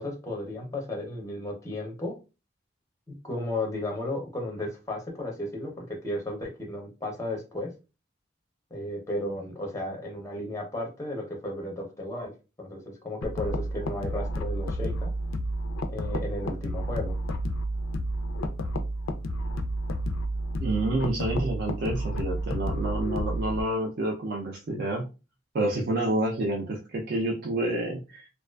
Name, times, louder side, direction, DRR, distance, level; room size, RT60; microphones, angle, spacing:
voice 1, 0.0-2.1 3.2-7.7 8.7-12.3 12.6-15.1 15.9-17.1, left 1 dB, 15° left, 0 dB, 0.5 m, -34 dB
sound 1, 13.2-23.6, equal, 85° left, 0.4 m, -31 dB
voice 2, 20.6-25.1 25.5-28.3, right 1 dB, 50° right, 0 dB, 0.4 m, -28 dB
2.4 x 2.3 x 2.2 m, 0.30 s
head